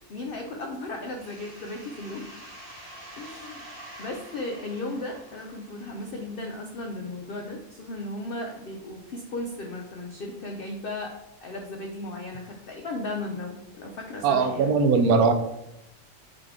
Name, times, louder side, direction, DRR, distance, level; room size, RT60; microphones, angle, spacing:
voice 1, 0.1-2.4 3.2-3.7 4.0-11.1 11.4-14.7, left 2 dB, 80° left, 2 dB, 0.5 m, -35 dB
sound 1, 1.2-6.6, right 1 dB, 35° right, 1.3 m, -47 dB
voice 2, 14.2-15.3, right 4 dB, 85° right, 7 dB, 1.1 m, -20 dB
3.9 x 3.4 x 3.6 m, 0.87 s
omnidirectional pair, 1.5 m